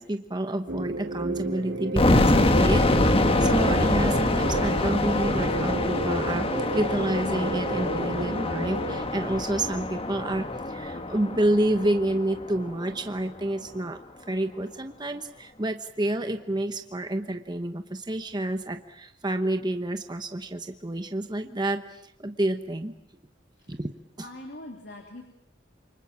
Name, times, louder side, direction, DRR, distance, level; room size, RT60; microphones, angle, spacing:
voice 1, 0.0-14.0 14.3-22.9 23.7-23.9 24.2-24.3, right 1 dB, 20° right, 7 dB, 1.0 m, -29 dB
sound 1, 0.7-9.0, right 2 dB, 65° right, 3.6 m, -32 dB
sound 2, 2.0-12.8, left 1 dB, 30° left, 1.4 m, -25 dB
voice 2, 24.2-25.2, left 1 dB, 60° left, 3 dB, 3.1 m, -42 dB
28.0 x 25.0 x 7.4 m, 0.82 s
head